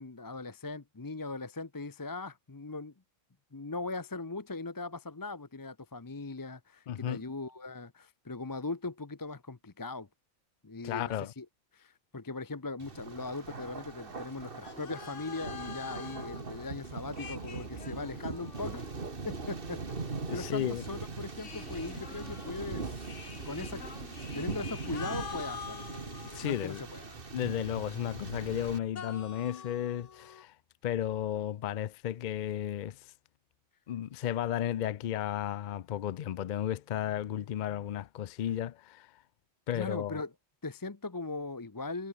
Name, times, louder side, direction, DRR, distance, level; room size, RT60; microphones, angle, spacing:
voice 1, 0.0-2.9 3.5-10.1 10.6-11.5 11.7-18.9 19.3-19.8 20.3-23.8 24.3-25.9 26.4-27.2 39.7-40.3 40.6-42.1, left 3 dB, 20° left, 0.6 m, -39 dB
voice 2, 6.9-7.2 10.8-11.3 20.3-20.8 26.2-26.8 27.3-30.6 30.8-33.1 33.9-39.2 39.7-40.2, left 11 dB, 80° left, 0.4 m, -34 dB
Thunder, 12.8-28.8, right 4 dB, 40° right, 2.1 m, -41 dB
sound 1, 14.6-16.4 17.1-19.4 21.3-26.9 28.9-30.4, left 6 dB, 60° left, 1.7 m, -46 dB
omnidirectional pair, 1.4 m